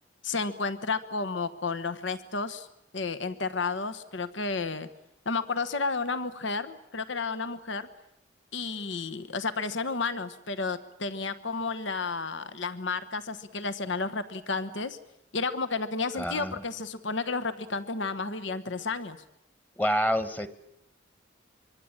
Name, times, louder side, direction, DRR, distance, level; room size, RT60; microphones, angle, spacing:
voice 1, 0.2-2.7 2.9-4.9 5.2-7.9 8.5-15.0 15.3-19.2, left 4 dB, 70° left, 12 dB, 1.2 m, -32 dB
voice 2, 16.2-16.6 19.8-20.5, equal, 10° left, 13 dB, 1.3 m, -27 dB
25.0 x 23.5 x 8.9 m, 0.79 s
head